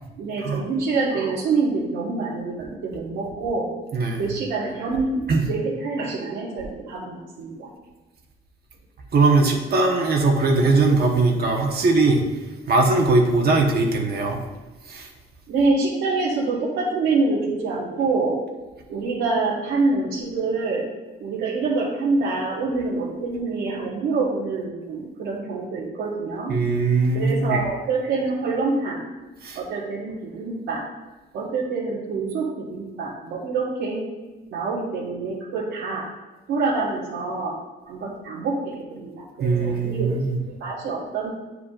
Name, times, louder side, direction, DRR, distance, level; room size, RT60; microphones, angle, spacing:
voice 1, 0.2-3.7 4.2-7.7 15.5-18.4 18.9-20.8 21.2-26.5 27.1-29.0 29.5-30.8 31.3-34.0 34.5-36.0 36.5-37.5 37.8-40.1 40.4-41.3, right 3 dB, 90° right, -8 dB, 1.7 m, -26 dB
voice 2, 3.9-4.3 5.3-5.4 9.1-12.2 12.7-14.4 14.9-15.1 26.5-27.6 29.4-29.6 39.4-40.4, right 3 dB, 55° right, 1 dB, 1.2 m, -20 dB
9.3 x 4.9 x 2.5 m, 1.2 s
cardioid pair, 90°, 20 cm